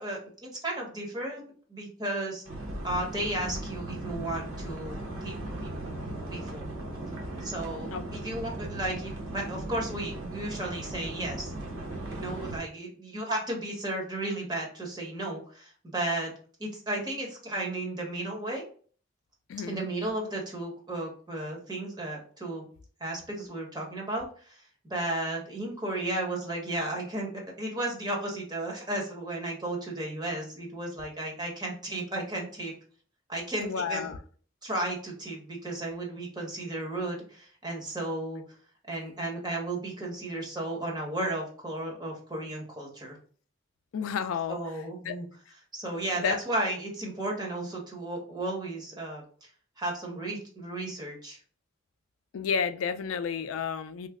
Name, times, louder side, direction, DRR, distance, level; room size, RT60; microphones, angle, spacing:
voice 1, 0.0-2.4 2.8-5.9 6.3-6.7 7.4-11.5 12.1-16.3 16.6-18.6 19.7-22.6 23.0-24.6 24.9-27.3 27.6-32.7 33.3-34.1 34.6-38.4 38.9-43.2 44.5-45.2 45.7-49.5 49.8-51.4, right 1 dB, 20° right, -1 dB, 1.1 m, -34 dB
sound 1, 2.5-12.6, right 1 dB, 90° right, 0.8 m, -37 dB
voice 2, 19.5-19.9 33.6-34.2 43.9-44.6 45.0-45.2 46.2-46.4 52.3-54.1, left 6 dB, 80° left, 11 dB, 0.3 m, -31 dB
3.1 x 2.1 x 3.5 m, 0.43 s
head